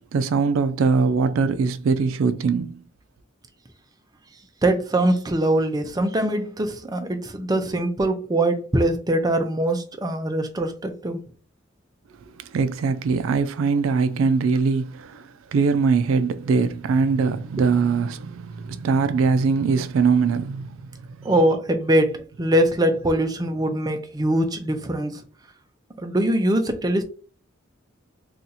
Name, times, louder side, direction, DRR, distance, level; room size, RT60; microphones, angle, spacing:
voice 1, 0.0-2.8 12.4-21.3, right 4 dB, 85° right, 0.3 m, -22 dB
voice 2, 4.6-11.2 17.6-17.7 21.2-25.2 26.0-27.0, right 1 dB, 20° right, 0.5 m, -22 dB
2.7 x 2.4 x 4.0 m
head